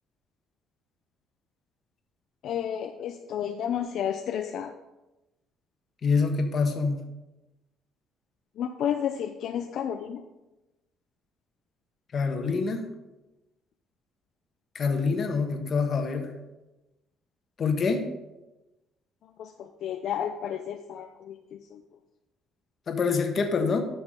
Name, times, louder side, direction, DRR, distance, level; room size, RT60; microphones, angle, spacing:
voice 1, 2.4-4.7 8.6-10.2 19.2-21.8, left 9 dB, 65° left, 6 dB, 0.5 m, -32 dB
voice 2, 6.0-7.0 12.1-12.9 14.7-16.3 17.6-18.1 22.9-23.8, left 4 dB, 40° left, 5 dB, 1.3 m, -26 dB
12.5 x 6.0 x 3.7 m, 1.0 s
cardioid pair, 115°, 0 cm